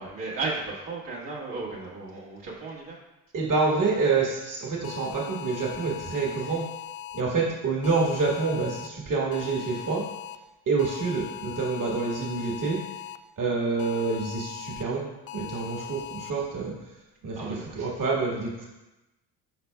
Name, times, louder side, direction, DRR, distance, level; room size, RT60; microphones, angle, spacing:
voice 1, 0.0-3.0 17.4-17.9, right 3 dB, 65° right, -4 dB, 1.7 m, -35 dB
voice 2, 3.3-6.7 7.1-10.1 10.7-12.8 13.4-16.7 17.2-18.6, right 4 dB, 40° right, -2 dB, 1.6 m, -27 dB
sound 1, 4.8-7.2 7.8-8.9 9.3-10.4 10.8-13.2 13.8-14.8 15.3-16.3, left 12 dB, 35° left, 0.4 m, -40 dB
10.5 x 4.3 x 2.3 m, 1.0 s
hypercardioid pair, 55°, 46 cm